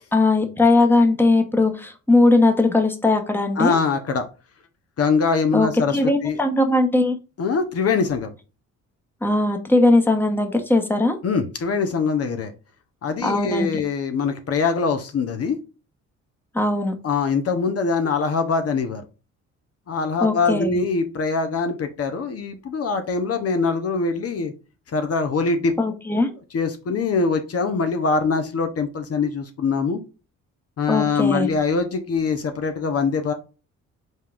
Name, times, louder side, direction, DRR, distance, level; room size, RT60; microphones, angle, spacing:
voice 1, 0.1-3.8 5.5-7.2 9.2-11.2 13.2-13.7 16.5-16.9 20.2-20.8 25.8-26.3 30.9-31.5, left 2 dB, 5° left, 5 dB, 1.0 m, -19 dB
voice 2, 3.6-4.3 5.0-6.4 7.4-8.3 11.2-12.5 13.0-15.6 17.0-19.0 19.9-24.5 24.9-25.7 26.5-30.0 30.8-33.3, left 4 dB, 50° left, 7 dB, 0.9 m, -23 dB
5.2 x 3.7 x 2.5 m, 0.31 s
cardioid pair, 90°, 30 cm